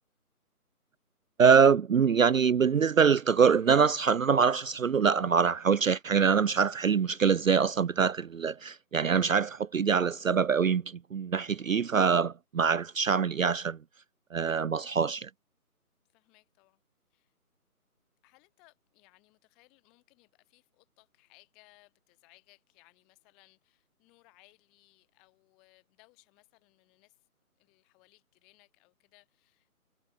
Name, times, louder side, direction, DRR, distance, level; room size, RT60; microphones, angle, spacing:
voice 1, 1.4-13.8 14.3-15.3, right 6 dB, 60° right, 0.5 m, -24 dB
voice 2, 16.1-16.8 17.1-17.3 18.2-27.3 27.5-29.7, left 26 dB, ahead, 0.9 m, -64 dB
figure-of-eight pair, 155°, 45 cm